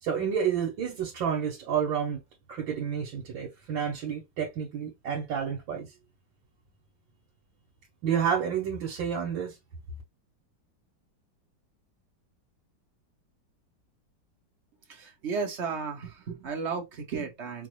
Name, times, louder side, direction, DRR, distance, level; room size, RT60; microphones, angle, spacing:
voice 1, 0.0-2.2 2.5-5.9 8.0-9.6, right 7 dB, 85° right, 1.7 m, -30 dB
voice 2, 14.9-17.7, right 5 dB, 45° right, 1.0 m, -34 dB
5.0 x 2.0 x 3.0 m
omnidirectional pair, 2.0 m